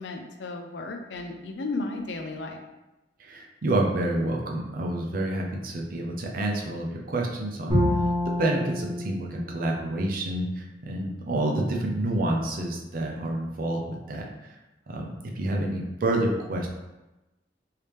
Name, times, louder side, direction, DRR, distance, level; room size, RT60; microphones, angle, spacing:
voice 1, 0.0-2.6, left 3 dB, 75° left, 4 dB, 0.5 m, -34 dB
voice 2, 3.2-7.8 8.4-14.3 14.9-16.7, right 1 dB, 50° right, 0 dB, 0.5 m, -28 dB
Bowed string instrument, 7.7-10.8, left 1 dB, 25° right, 1.3 m, -28 dB
3.1 x 2.8 x 3.3 m, 1.0 s
head